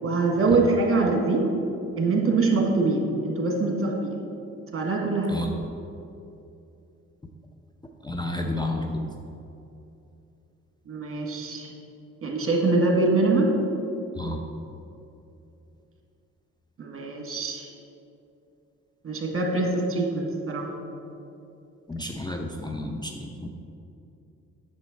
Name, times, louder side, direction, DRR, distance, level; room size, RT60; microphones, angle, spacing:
voice 1, 0.0-1.5 2.0-4.2 4.7-5.4 10.9-11.7 12.2-13.5 16.8-17.7 19.0-20.7, right 3 dB, 40° right, 1 dB, 1.7 m, -24 dB
voice 2, 8.0-9.0 14.2-14.4 21.9-23.5, left 1 dB, 10° left, 2 dB, 0.6 m, -31 dB
8.1 x 6.8 x 4.0 m, 2.8 s
hypercardioid pair, 50°, 35 cm